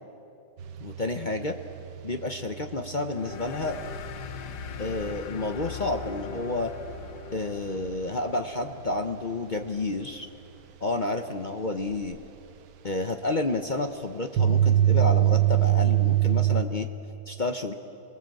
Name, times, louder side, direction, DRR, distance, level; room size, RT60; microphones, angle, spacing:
sound 1, 0.6-5.5 5.8-6.0 6.4-6.5 7.0-7.1 12.1-12.2 14.4-16.6, right 12 dB, 70° right, 1.4 m, -25 dB
voice 1, 0.8-1.6 2.0-3.8 4.8-6.7 7.3-10.3 10.8-12.2 12.8-16.9 17.3-17.7, left 2 dB, 40° left, 6 dB, 0.7 m, -30 dB
sound 2, 3.1-10.2, left 6 dB, 70° left, 1.5 m, -41 dB
28.5 x 20.0 x 7.7 m, 2.8 s
omnidirectional pair, 1.9 m